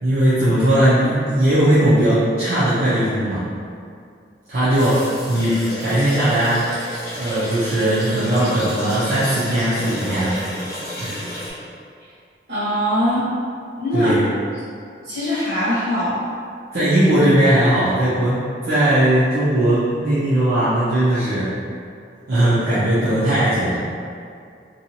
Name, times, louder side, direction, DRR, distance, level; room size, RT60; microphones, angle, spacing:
voice 1, 0.0-3.4 4.5-6.7 7.1-10.4 11.0-11.2 13.9-14.3 16.7-21.5 22.3-23.8, right 1 dB, 60° right, -13 dB, 0.6 m, -18 dB
sound 1, 4.8-11.5, equal, 15° left, 1.0 m, -31 dB
voice 2, 12.5-13.2 13.8-14.1 15.0-16.2, equal, 75° right, -10 dB, 1.2 m, -21 dB
2.7 x 2.3 x 2.7 m, 2.3 s
head